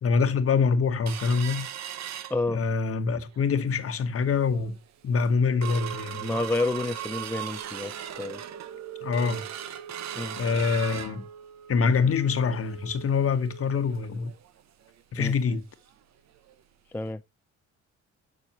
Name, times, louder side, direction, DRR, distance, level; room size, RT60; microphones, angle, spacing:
voice 1, 0.0-1.7 2.5-4.8 5.0-6.4 9.0-9.4 10.4-11.3 11.7-14.3 15.1-15.6, left 5 dB, 50° left, 1.1 m, -25 dB
sound 1, 1.1-2.9 3.3-3.4 3.8-4.1 4.6-4.7 5.0-15.6 15.9-16.0 16.4-16.5 17.1-17.2, right 10 dB, 60° right, 0.8 m, -39 dB
voice 2, 6.2-8.4 10.2-10.4 15.2-15.3 16.9-17.2, left 2 dB, 5° left, 0.3 m, -29 dB
7.2 x 6.3 x 2.9 m
cardioid pair, 90°, 30 cm